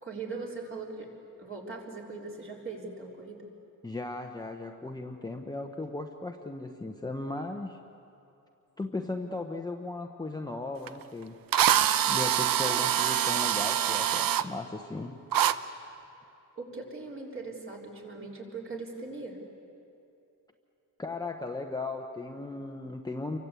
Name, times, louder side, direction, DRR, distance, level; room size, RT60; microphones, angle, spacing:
voice 1, 0.0-1.1 1.4-3.4 12.7-12.9 16.6-19.4, right 3 dB, 35° right, -1 dB, 3.9 m, -40 dB
voice 2, 3.8-7.8 8.8-11.4 12.1-15.1 21.0-23.4, left 2 dB, 10° left, 2 dB, 0.9 m, -37 dB
Drill, 10.9-11.0 11.5-14.4 15.3-15.5, right 10 dB, 85° right, 0.8 m, -25 dB
28.5 x 24.0 x 8.3 m, 2.8 s
wide cardioid pair, 175°, 34 cm